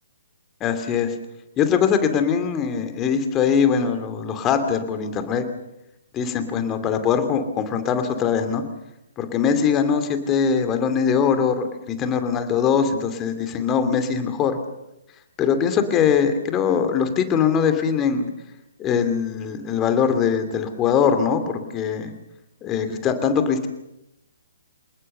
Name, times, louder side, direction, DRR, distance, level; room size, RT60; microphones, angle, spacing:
voice 1, 0.6-1.1 1.6-5.5 6.1-8.6 9.2-14.6 15.4-18.3 18.8-22.1 22.6-23.7, left 7 dB, 20° left, 8 dB, 2.7 m, -22 dB
28.0 x 19.5 x 6.8 m, 0.87 s
figure-of-eight pair, 130°, 0 cm